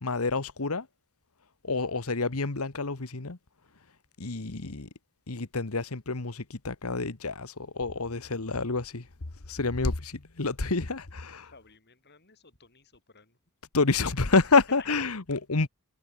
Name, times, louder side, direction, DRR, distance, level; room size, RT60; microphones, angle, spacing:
voice 1, 0.0-0.9 1.6-3.4 4.2-4.9 5.3-9.1 9.5-11.5 13.7-15.7, left 3 dB, 75° left, 1.5 m, -28 dB
voice 2, 11.4-13.4 14.5-14.8, left 4 dB, 50° left, 6.2 m, -51 dB
head